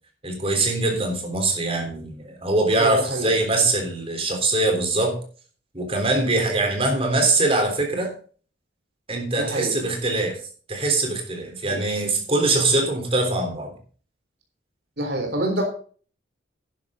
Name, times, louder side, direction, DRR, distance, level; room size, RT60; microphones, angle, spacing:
voice 1, 0.2-5.2 5.7-8.1 9.1-10.4 10.7-13.7, right 2 dB, 30° right, 4 dB, 3.5 m, -22 dB
voice 2, 2.7-3.4 9.4-9.8 11.6-11.8 15.0-15.6, right 1 dB, 60° right, 3 dB, 3.6 m, -27 dB
11.5 x 10.5 x 3.8 m, 0.41 s
head